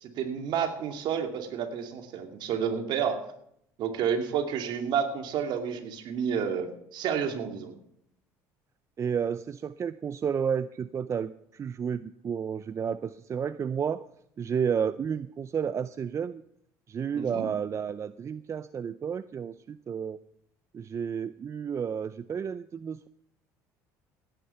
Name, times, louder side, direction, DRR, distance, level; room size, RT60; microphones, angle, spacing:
voice 1, 0.0-3.2 3.8-7.7 17.1-17.5, right 7 dB, 65° right, 5 dB, 2.5 m, -30 dB
voice 2, 9.0-14.1 14.4-16.4 16.9-20.2 20.7-23.1, right 7 dB, 35° right, 15 dB, 0.5 m, -31 dB
16.5 x 10.5 x 5.7 m, 0.73 s
supercardioid pair, 80°, 9 cm